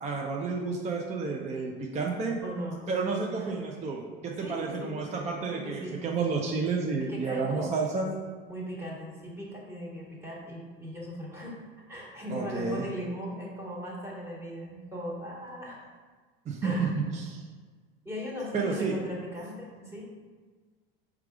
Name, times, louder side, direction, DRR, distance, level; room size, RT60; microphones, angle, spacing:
voice 1, 0.0-2.4 2.9-8.1 12.3-12.8 16.5-17.4 18.5-19.0, right 4 dB, 25° right, -1 dB, 0.5 m, -30 dB
voice 2, 2.4-2.8 3.3-3.6 4.4-5.0 5.4-6.0 7.1-7.8 8.5-11.6 11.9-15.8 16.6-16.9 18.0-20.0, equal, 10° right, -4 dB, 1.4 m, -38 dB
4.6 x 2.4 x 4.8 m, 1.5 s
hypercardioid pair, 90°, 29 cm